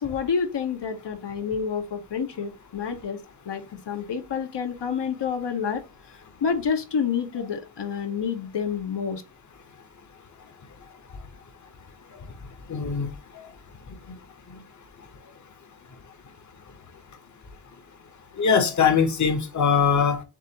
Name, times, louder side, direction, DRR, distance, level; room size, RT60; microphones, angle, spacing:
voice 1, 0.0-3.2 3.4-5.8 6.1-9.2, left 6 dB, 75° left, 1.0 m, -28 dB
voice 2, 12.7-13.1 13.3-13.5 18.4-20.2, left 6 dB, 45° left, 0.9 m, -21 dB
7.3 x 2.5 x 2.9 m
wide cardioid pair, 115°, 42 cm